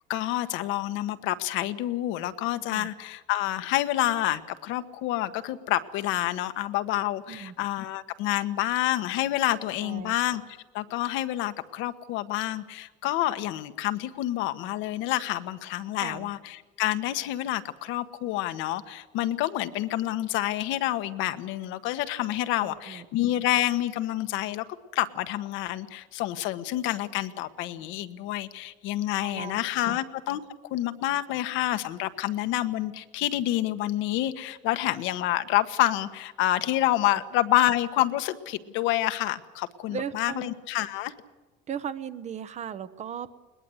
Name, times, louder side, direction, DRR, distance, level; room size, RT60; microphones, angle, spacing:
voice 1, 0.1-10.4 10.7-24.6 24.9-30.4 30.7-41.1, left 14 dB, 75° left, 11 dB, 1.4 m, -28 dB
voice 2, 9.8-10.1 16.0-16.3 22.6-23.0 29.2-30.0 39.9-40.5 41.7-43.3, right 7 dB, 35° right, 12 dB, 1.0 m, -37 dB
21.5 x 20.5 x 7.9 m, 1.2 s
cardioid pair, 145°, 20 cm